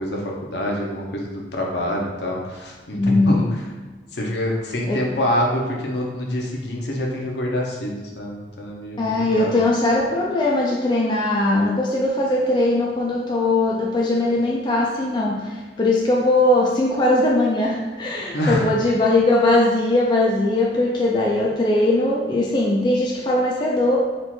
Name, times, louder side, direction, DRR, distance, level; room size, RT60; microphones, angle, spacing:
voice 1, 0.0-3.6 4.1-9.0 9.4-9.6 18.3-18.7, left 1 dB, 65° left, -1 dB, 0.8 m, -25 dB
voice 2, 2.9-3.4 4.9-5.0 9.0-24.0, left 2 dB, 25° left, -3 dB, 0.4 m, -20 dB
4.4 x 2.5 x 4.3 m, 1.3 s
head